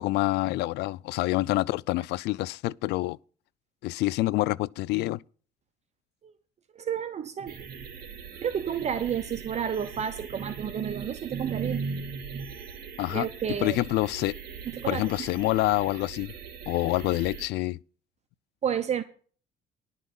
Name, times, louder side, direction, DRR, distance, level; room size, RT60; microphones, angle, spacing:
voice 1, 0.0-3.2 3.8-5.2 13.0-13.3 13.6-14.4 14.9-16.3 16.7-17.8, left 19 dB, 80° left, 0.4 m, -27 dB
voice 2, 6.7-7.8 8.4-12.5 13.1-13.8 14.7-15.3 18.6-19.0, right 8 dB, 40° right, 0.9 m, -31 dB
sound 1, 7.5-17.5, right 7 dB, 65° right, 3.1 m, -42 dB
11.5 x 5.6 x 8.0 m
cardioid pair, 110°, 17 cm